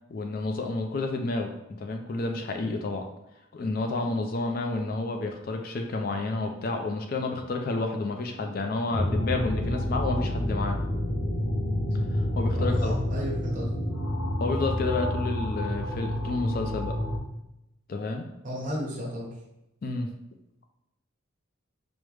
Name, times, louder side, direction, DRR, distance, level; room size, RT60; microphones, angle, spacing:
voice 1, 0.1-3.0 3.5-10.8 12.1-13.0 14.4-16.9 17.9-18.3 19.8-20.1, left 3 dB, 45° left, 4 dB, 0.3 m, -30 dB
sound 1, 8.9-17.2, left 1 dB, 80° left, 0.6 m, -28 dB
voice 2, 12.6-13.6 18.4-19.3, equal, 40° right, -5 dB, 1.1 m, -33 dB
4.7 x 2.0 x 3.2 m, 0.88 s
head